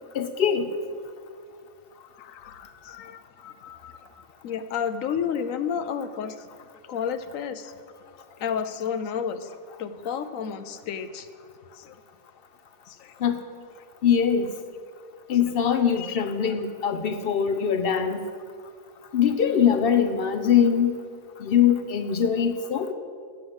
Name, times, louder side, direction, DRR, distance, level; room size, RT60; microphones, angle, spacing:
voice 1, 0.1-0.7 13.2-13.4 14.0-14.5 15.3-18.2 19.1-21.0 21.4-22.9, left 8 dB, 60° left, 8 dB, 0.6 m, -22 dB
voice 2, 2.0-6.4 6.9-7.7 8.4-11.3 11.8-12.0 12.9-13.3 16.0-16.2, left 7 dB, 80° left, 10 dB, 1.0 m, -32 dB
7.6 x 7.2 x 7.9 m, 2.1 s
omnidirectional pair, 1.4 m